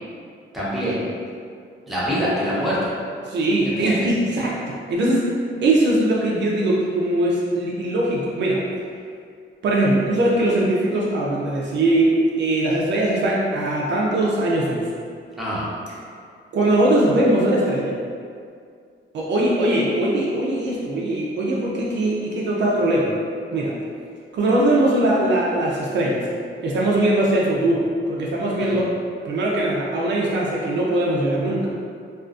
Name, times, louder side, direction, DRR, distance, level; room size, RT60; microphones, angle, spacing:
voice 1, 0.5-1.1 1.9-2.8 3.7-3.9 15.4-15.6 28.6-28.8, equal, ahead, -9 dB, 0.6 m, -25 dB
voice 2, 3.2-5.3 5.6-8.7 9.6-14.9 16.5-18.0 19.1-23.2 23.5-23.7 24.3-26.3 26.6-28.9 29.3-31.7, right 1 dB, 60° right, -4 dB, 0.4 m, -21 dB
2.4 x 2.4 x 2.3 m, 2.2 s
cardioid pair, 130°, 21 cm